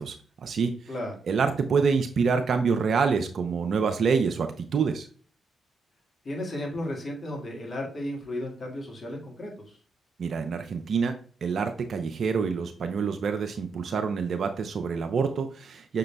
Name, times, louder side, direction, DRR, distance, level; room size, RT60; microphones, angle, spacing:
voice 1, 0.0-0.7 1.3-5.1 10.2-11.1 11.4-16.0, right 5 dB, 65° right, 7 dB, 0.5 m, -26 dB
voice 2, 6.2-9.8, left 1 dB, 50° left, 0 dB, 1.7 m, -34 dB
6.1 x 3.8 x 2.2 m, 0.43 s
hypercardioid pair, 45°, 0 cm